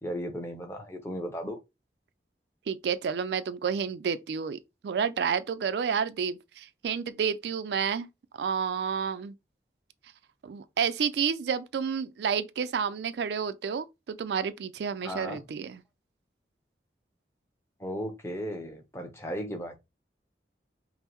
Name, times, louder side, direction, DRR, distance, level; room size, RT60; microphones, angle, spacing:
voice 1, 0.0-1.6 15.0-15.4 17.8-19.8, equal, 15° left, 0.7 m, -35 dB
voice 2, 2.7-8.1 8.4-9.3 10.4-15.8, right 6 dB, 75° right, 0.3 m, -30 dB
5.3 x 2.0 x 2.9 m
head